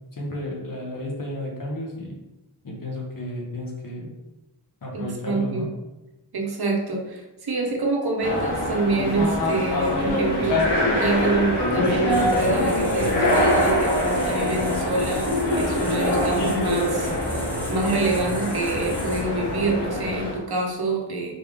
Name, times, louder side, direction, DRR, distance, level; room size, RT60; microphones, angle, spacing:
voice 1, 0.1-2.2 2.6-4.1 4.8-5.7, left 1 dB, 50° left, -1 dB, 1.3 m, -32 dB
voice 2, 4.9-5.7 6.3-15.3 15.6-21.3, right 3 dB, 60° right, 0 dB, 1.1 m, -26 dB
sound 1, 8.2-20.4, left 1 dB, 70° left, 1.4 m, -24 dB
sound 2, 12.1-19.2, left 1 dB, 5° left, 1.4 m, -36 dB
4.2 x 3.4 x 3.5 m, 0.99 s
wide cardioid pair, 95°, 43 cm